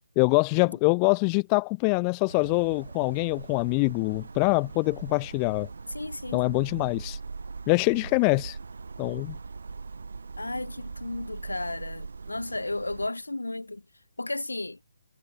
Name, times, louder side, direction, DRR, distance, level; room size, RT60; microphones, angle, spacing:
voice 1, 0.2-5.7 6.3-7.2 7.7-8.6 9.0-9.4, left 40 dB or more, 25° left, 0.8 m, -24 dB
sound 1, 2.3-13.1, right 4 dB, 65° right, 1.5 m, -40 dB
voice 2, 5.9-6.5 10.4-13.8 14.2-14.8, left 2 dB, 85° left, 6.2 m, -34 dB
figure-of-eight pair, 145°, 0 cm